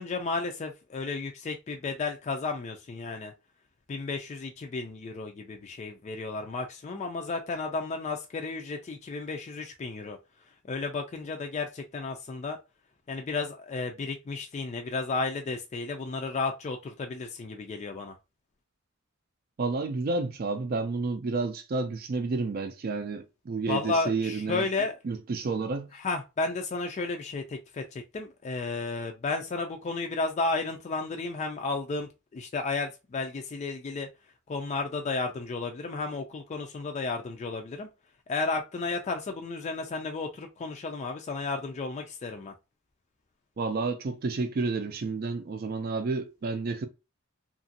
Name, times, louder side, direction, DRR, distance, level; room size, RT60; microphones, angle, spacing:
voice 1, 0.0-3.3 3.9-10.2 10.7-12.6 13.1-18.1 23.7-25.0 25.9-34.1 34.5-37.9 38.3-42.5, left 3 dB, 35° left, 0.3 m, -33 dB
voice 2, 19.6-24.7 25.0-25.9 43.6-46.9, right 3 dB, 45° right, 0.4 m, -30 dB
2.9 x 2.5 x 2.6 m
head